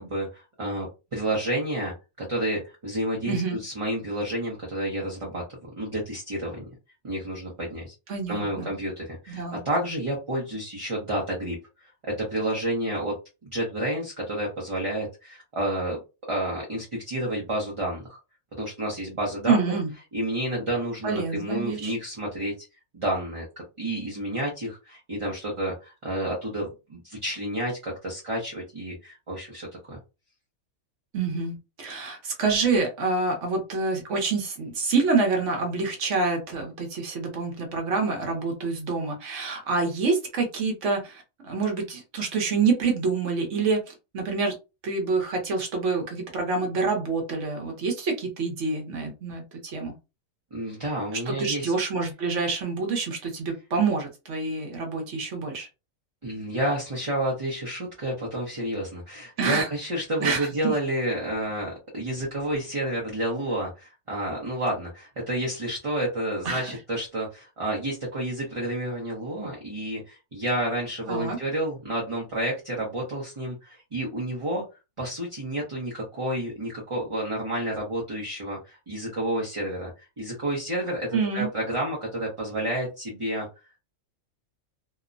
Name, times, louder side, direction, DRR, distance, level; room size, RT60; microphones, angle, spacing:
voice 1, 0.0-1.9 2.3-6.7 7.0-7.9 8.3-13.2 13.4-16.0 16.3-18.2 18.6-19.7 20.1-22.5 22.9-23.5 23.8-30.0 50.5-51.7 56.2-74.6 75.0-79.9 80.2-83.5, right 1 dB, 30° right, -4 dB, 0.6 m, -30 dB
voice 2, 3.3-3.6 8.1-8.7 9.3-9.6 19.5-19.9 21.0-22.0 31.1-44.5 44.8-50.0 51.1-55.7 59.4-59.7 60.2-60.7 66.4-66.7 71.1-71.4 81.1-81.5, right 4 dB, 65° right, 2 dB, 1.0 m, -27 dB
2.9 x 2.1 x 2.5 m, 0.28 s
omnidirectional pair, 1.4 m